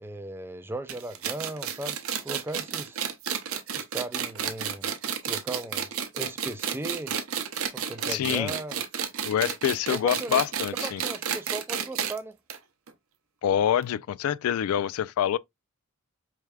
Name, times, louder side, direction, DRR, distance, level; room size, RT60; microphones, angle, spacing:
voice 1, 0.0-2.0 2.2-3.0 3.7-4.9 5.2-5.9 6.1-7.1 7.7-8.8 9.9-10.5 10.8-12.4, right 2 dB, 10° right, 0.3 m, -37 dB
sound 1, 0.9-12.2 12.5-12.6 12.9-13.0 13.8-13.9, right 8 dB, 75° right, 0.7 m, -31 dB
voice 2, 8.1-8.5 9.2-11.0 13.4-15.4, left 9 dB, 80° left, 0.3 m, -26 dB
4.6 x 3.3 x 2.3 m
head